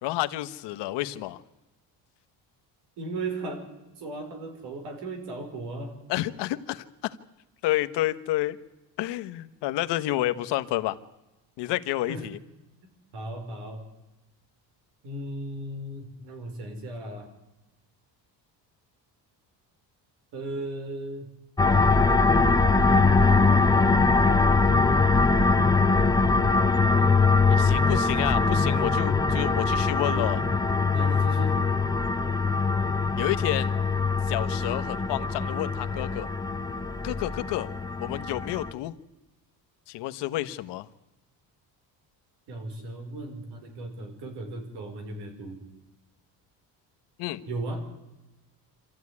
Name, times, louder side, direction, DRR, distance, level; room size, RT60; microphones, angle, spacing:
voice 1, 0.0-1.4 6.1-7.2 7.6-8.6 9.0-11.0 11.6-12.4 27.5-30.4 33.2-33.7 34.3-36.3 37.0-37.7 38.0-38.9 39.9-40.9 47.2-47.4, left 16 dB, 85° left, 11 dB, 1.2 m, -30 dB
voice 2, 3.0-3.7 4.0-6.0 12.1-12.3 13.1-13.8 15.0-17.3 20.3-21.3 30.1-30.3 30.9-31.6 42.5-45.6 47.5-47.9, right 2 dB, 80° right, 6 dB, 5.4 m, -36 dB
sound 1, 21.6-38.7, left 4 dB, 10° left, 0.9 m, -22 dB
26.0 x 14.0 x 9.7 m, 1.0 s
cardioid pair, 145°, 40 cm